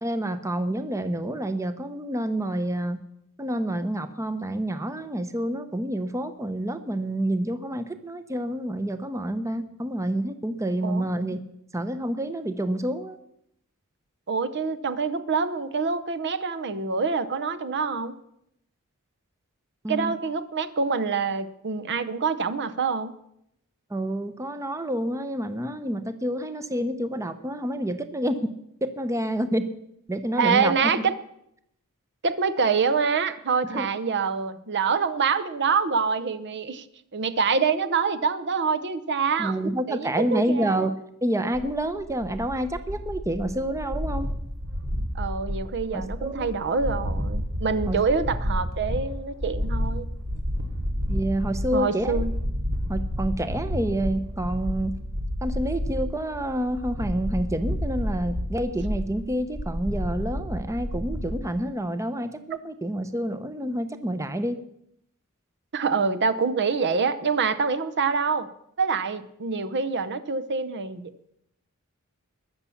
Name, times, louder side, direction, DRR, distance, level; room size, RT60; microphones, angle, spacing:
voice 1, 0.0-3.0 3.4-11.4 11.7-13.2 19.8-20.1 23.9-28.4 28.8-29.6 30.1-30.7 33.7-33.9 39.4-40.9 41.2-44.3 45.9-46.5 47.9-48.0 51.1-52.2 52.9-55.0 55.4-64.6, right 1 dB, 15° right, 10 dB, 0.7 m, -28 dB
voice 2, 14.3-18.1 19.9-23.1 30.4-31.1 32.2-36.8 37.1-40.9 45.1-50.1 51.7-52.3 65.7-68.5 68.8-71.1, right 5 dB, 50° right, 13 dB, 0.8 m, -26 dB
sound 1, 41.5-61.4, equal, 70° right, 2.8 m, -30 dB
21.0 x 7.1 x 7.1 m, 0.77 s
head